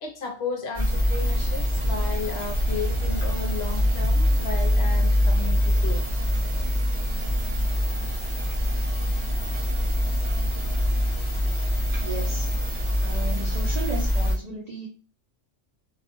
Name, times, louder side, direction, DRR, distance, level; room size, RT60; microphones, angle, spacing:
voice 1, 0.0-6.0 10.9-11.0, left 4 dB, 65° left, 0.8 m, -34 dB
sound 1, 0.7-14.3, equal, 30° right, 0.6 m, -24 dB
voice 2, 12.0-12.5 13.0-14.9, right 2 dB, 70° right, 0.4 m, -34 dB
2.4 x 2.2 x 2.9 m
omnidirectional pair, 1.3 m